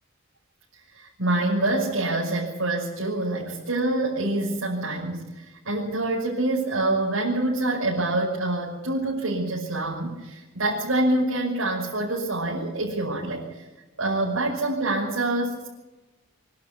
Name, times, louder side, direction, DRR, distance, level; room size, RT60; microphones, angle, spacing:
voice 1, 0.9-13.7 14.0-15.7, right 2 dB, 85° right, -5 dB, 6.0 m, -26 dB
25.5 x 12.0 x 9.6 m, 1.1 s
head